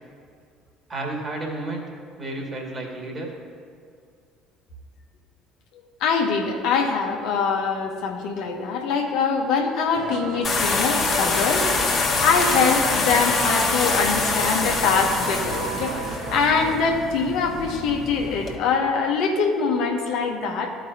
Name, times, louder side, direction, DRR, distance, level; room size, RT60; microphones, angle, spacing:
voice 1, 0.9-1.9 2.2-3.3, right 2 dB, 35° right, 0 dB, 2.1 m, -31 dB
voice 2, 6.0-11.7 12.2-20.7, left 5 dB, 65° left, 2 dB, 1.0 m, -23 dB
sound 1, 9.9-16.8, right 8 dB, 60° right, 0.5 m, -34 dB
sound 2, 10.4-18.6, left 4 dB, 40° left, 1.4 m, -25 dB
14.0 x 5.2 x 2.8 m, 2.2 s
figure-of-eight pair, 55°, 0 cm